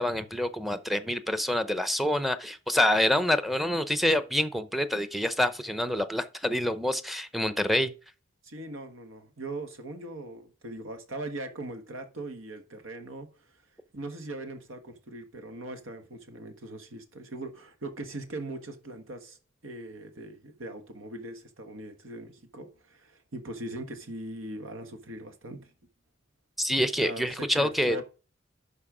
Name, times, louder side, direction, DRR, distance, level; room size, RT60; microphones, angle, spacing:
voice 1, 0.0-7.9 26.6-28.0, left 1 dB, ahead, 0.6 m, -27 dB
voice 2, 8.4-13.3 13.9-19.4 19.6-25.7 27.0-28.0, right 2 dB, 90° right, 1.5 m, -40 dB
11.5 x 4.4 x 4.9 m
head